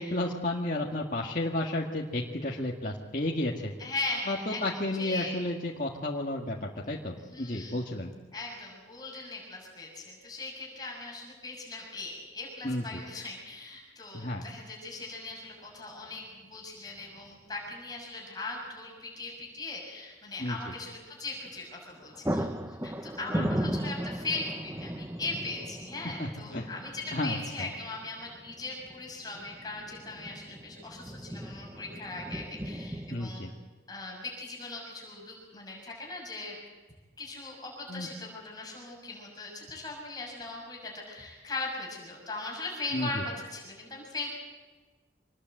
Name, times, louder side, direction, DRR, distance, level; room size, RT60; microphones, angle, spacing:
voice 1, 0.0-3.7 4.3-8.1 12.6-13.0 14.1-14.4 20.4-20.7 23.4-23.8 26.2-26.7 27.1-27.7 33.1-33.5 37.9-38.1 42.9-43.2, left 1 dB, 45° left, -3 dB, 1.9 m, -32 dB
voice 2, 3.8-5.4 7.3-7.8 8.3-33.5 33.9-36.6 37.2-44.3, left 3 dB, 20° left, -2 dB, 6.5 m, -39 dB
sound 1, 15.3-15.4 17.0-17.4 17.7-17.8 21.5-21.7 21.9-33.3, equal, 15° right, 1.0 m, -37 dB
26.0 x 20.5 x 8.0 m, 1.3 s
head